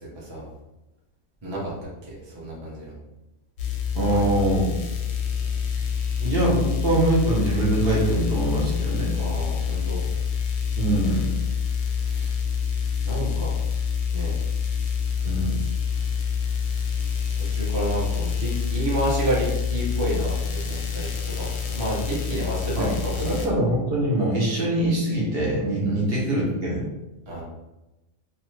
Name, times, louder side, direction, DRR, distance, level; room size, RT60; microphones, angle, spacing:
voice 1, 2.0-2.9 4.0-4.3 9.1-10.1 12.1-12.4 13.0-13.5 14.1-14.3 17.4-21.1 21.4-23.3 25.8-26.0 27.3-27.4, right 1 dB, 25° right, -5 dB, 0.6 m, -30 dB
sound 1, 3.6-23.5, left 7 dB, 65° left, 0.8 m, -27 dB
voice 2, 3.9-4.6 6.2-9.1 10.8-11.3 15.2-15.6 22.8-22.9 23.2-26.8, right 1 dB, 55° right, -4 dB, 0.9 m, -23 dB
2.9 x 2.2 x 3.1 m, 0.99 s
omnidirectional pair, 1.3 m